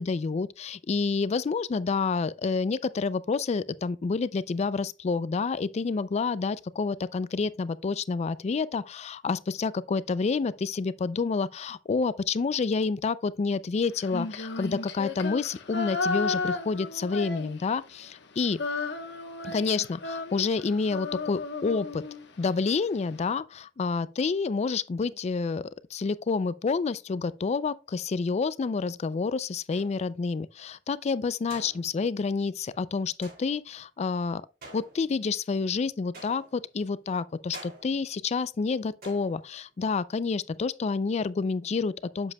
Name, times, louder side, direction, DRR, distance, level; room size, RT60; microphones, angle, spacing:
voice 1, 0.0-18.6 19.4-22.0 22.4-25.6 25.9-34.4 34.7-42.3, left 4 dB, 35° left, 0.3 m, -29 dB
Female singing, 14.0-17.9 18.2-22.5, left 4 dB, 70° left, 1.1 m, -34 dB
sound 1, 29.7-30.2 31.5-32.2 33.2-33.7 34.6-35.4 36.1-36.8 37.5-38.2 39.0-39.7, right 2 dB, 55° right, 2.7 m, -48 dB
8.1 x 7.2 x 2.2 m
head